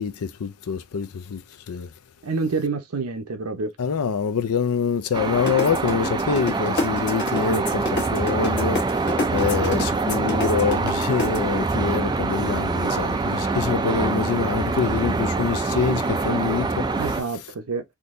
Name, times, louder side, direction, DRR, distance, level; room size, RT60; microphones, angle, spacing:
voice 1, 0.0-1.9 3.8-9.1 9.3-16.9, left 6 dB, 80° left, 0.4 m, -25 dB
voice 2, 2.2-3.7 17.0-17.8, right 4 dB, 85° right, 0.8 m, -27 dB
sound 1, 5.1-17.2, right 3 dB, 20° right, 0.3 m, -25 dB
sound 2, 5.5-11.4, left 2 dB, 50° left, 1.1 m, -27 dB
3.7 x 2.8 x 2.5 m
head